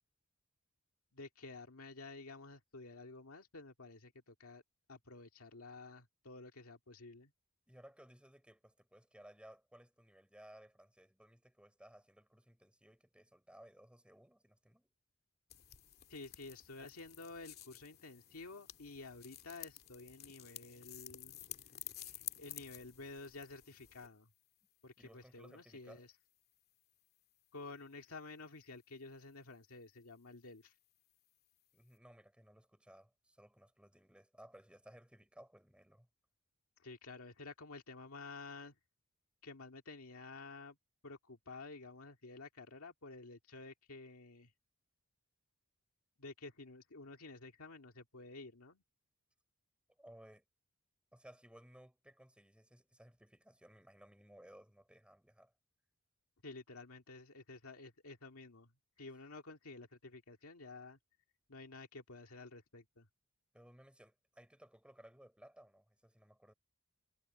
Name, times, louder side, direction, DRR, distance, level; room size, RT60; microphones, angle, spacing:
voice 1, 1.1-4.6 4.9-7.3 16.1-21.3 22.0-24.3 24.8-26.1 27.5-30.7 36.8-38.7 39.4-40.8 41.0-44.5 46.2-48.8 56.4-58.7 59.0-61.0 61.5-63.1, left 3 dB, 75° left, 2.1 m, -51 dB
voice 2, 7.7-14.9 25.0-26.1 31.7-36.1 50.0-50.4 51.1-55.5 63.5-66.5, right 1 dB, 5° right, 4.0 m, -60 dB
sound 1, 15.5-24.1, left 12 dB, 45° left, 2.5 m, -52 dB
head